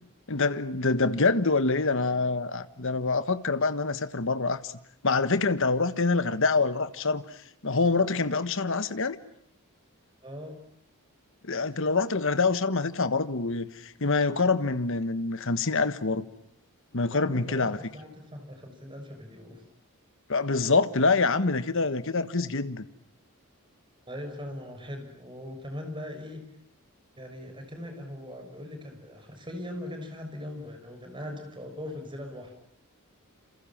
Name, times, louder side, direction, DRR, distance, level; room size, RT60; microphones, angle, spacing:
voice 1, 0.3-4.7 5.0-7.4 7.6-9.2 11.4-16.3 16.9-17.8 20.3-22.8, left 3 dB, 60° left, 1.4 m, -26 dB
voice 2, 10.2-10.6 17.1-19.6 24.1-26.4 27.2-32.5, left 1 dB, 20° right, 6.5 m, -40 dB
28.5 x 28.0 x 7.4 m
head